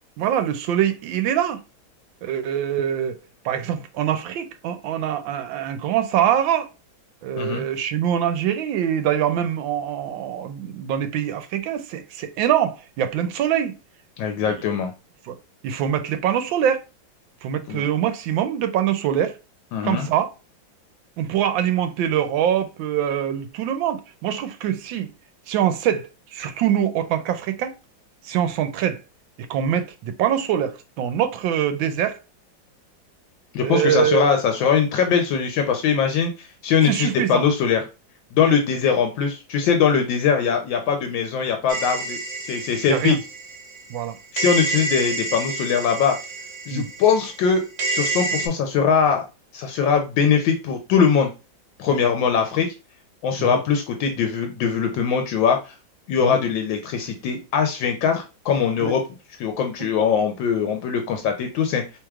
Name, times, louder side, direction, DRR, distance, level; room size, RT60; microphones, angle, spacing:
voice 1, 0.2-1.6 2.2-3.2 3.4-6.7 7.2-13.8 14.4-14.8 15.2-15.4 15.6-16.9 17.4-19.4 19.8-20.3 21.2-25.1 25.5-27.7 28.2-29.0 29.5-32.2 33.6-34.4 36.8-37.5 38.4-38.6 42.9-43.2 43.9-44.2 46.7-46.9 51.9-52.0 53.4-53.6 56.2-56.4 58.8-58.9 59.8-59.9, right 10 dB, 80° right, 1.3 m, -24 dB
voice 2, 14.2-14.9 17.7-17.8 19.7-20.1 33.5-37.8 38.3-43.2 44.3-46.2 46.7-49.2 49.5-51.3 51.8-52.7 53.2-55.7 56.1-59.0 59.4-61.8, left 6 dB, 80° left, 1.4 m, -21 dB
sound 1, 41.7-44.0 44.4-48.5, right 3 dB, 55° right, 1.3 m, -29 dB
4.6 x 3.3 x 2.3 m
omnidirectional pair, 2.1 m